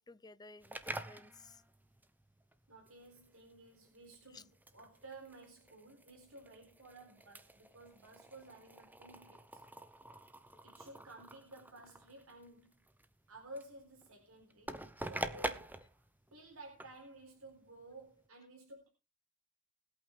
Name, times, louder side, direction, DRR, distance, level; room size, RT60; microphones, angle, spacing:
voice 1, 0.0-1.6 4.3-4.4 10.5-10.9, left 3 dB, 20° left, 0.6 m, -56 dB
sound 1, 0.6-18.3, right 1 dB, 10° right, 1.0 m, -47 dB
voice 2, 2.7-9.6 10.6-12.7 13.3-16.0 16.3-18.9, right 2 dB, 85° right, 4.2 m, -54 dB
20.5 x 8.7 x 3.6 m
head